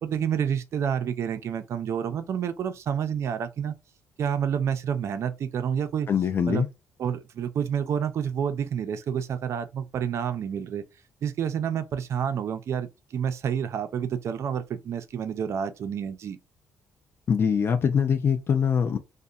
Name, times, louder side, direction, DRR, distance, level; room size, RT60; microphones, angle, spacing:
voice 1, 0.0-3.7 4.2-6.1 6.5-6.6 7.0-10.8 11.2-16.4, right 8 dB, 55° right, 0.4 m, -29 dB
voice 2, 6.1-6.7 17.3-19.0, left 7 dB, 45° left, 0.3 m, -23 dB
2.8 x 2.1 x 2.3 m
cardioid pair, 105°, 6 cm